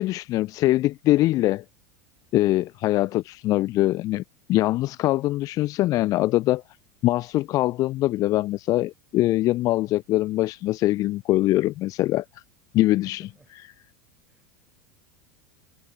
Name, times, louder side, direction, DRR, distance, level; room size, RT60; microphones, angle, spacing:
voice 1, 0.0-1.6 2.3-4.2 4.5-6.6 7.0-12.4 12.7-13.6, left 16 dB, 35° left, 0.3 m, -23 dB
voice 2, 13.0-13.5 14.3-14.5, right 2 dB, 5° right, 3.7 m, -55 dB
figure-of-eight pair, 80°, 10 cm